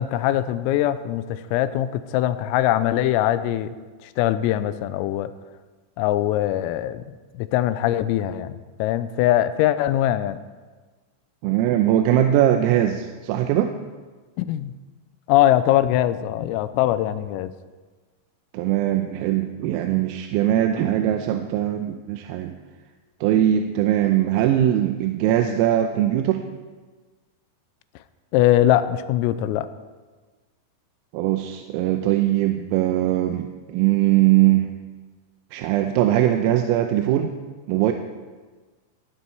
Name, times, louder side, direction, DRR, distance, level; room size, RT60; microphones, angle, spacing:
voice 1, 0.0-3.7 4.0-5.3 6.0-7.0 7.4-10.4 14.4-14.7 15.3-17.5 28.3-29.7, left 13 dB, 90° left, 13 dB, 3.3 m, -22 dB
voice 2, 11.4-13.7 18.5-22.6 23.2-26.4 31.1-34.7 35.5-37.3 37.7-37.9, right 12 dB, 90° right, 5 dB, 3.4 m, -21 dB
19.0 x 13.0 x 4.6 m, 1.4 s
omnidirectional pair, 5.9 m